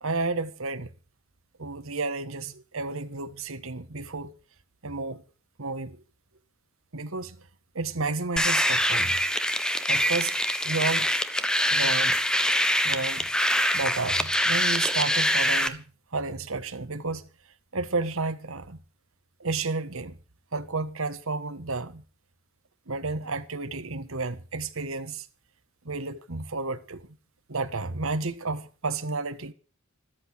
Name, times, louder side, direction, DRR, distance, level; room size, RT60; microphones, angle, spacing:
voice 1, 0.0-0.9 1.6-4.4 4.8-5.2 5.6-6.0 6.9-7.5 7.7-9.2 9.9-11.1 11.7-12.2 12.8-13.3 13.7-15.8 16.1-17.3 17.7-18.8 19.4-20.2 20.5-22.0 22.9-25.3 25.8-27.1 27.5-29.5, right 3 dB, 70° right, 1.4 m, -31 dB
sound 1, 8.4-15.7, equal, 5° left, 1.1 m, -24 dB
14.0 x 13.0 x 5.7 m
head